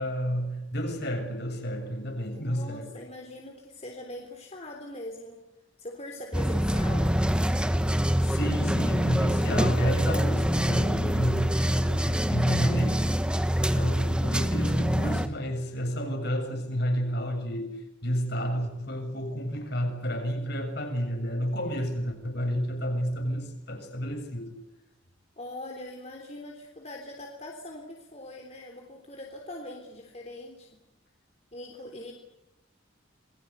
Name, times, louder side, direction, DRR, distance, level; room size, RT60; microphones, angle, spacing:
voice 1, 0.0-2.9 8.2-13.2 13.7-17.8 18.0-24.5, equal, 55° left, 4 dB, 7.1 m, -30 dB
voice 2, 2.4-5.4 5.8-7.1 25.4-30.7 31.5-32.1, left 1 dB, 35° left, 1 dB, 3.5 m, -41 dB
sound 1, 6.3-15.3, equal, 5° right, 1.2 m, -25 dB
28.0 x 22.0 x 8.2 m, 0.93 s
head